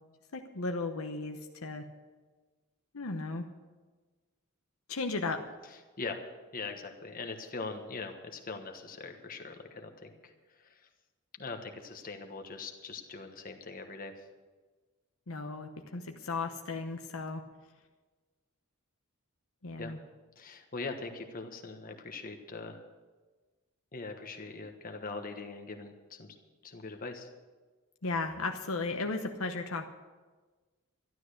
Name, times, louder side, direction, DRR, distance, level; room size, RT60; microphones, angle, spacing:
voice 1, 0.3-1.9 2.9-3.5 4.9-5.4 15.3-17.4 19.6-20.0 28.0-29.9, left 3 dB, 70° left, 5 dB, 0.9 m, -35 dB
voice 2, 6.5-10.1 11.4-14.1 19.8-19.9 20.4-22.8 23.9-26.3 26.6-27.3, left 3 dB, 40° left, 5 dB, 1.3 m, -41 dB
12.5 x 12.0 x 6.6 m, 1.3 s
head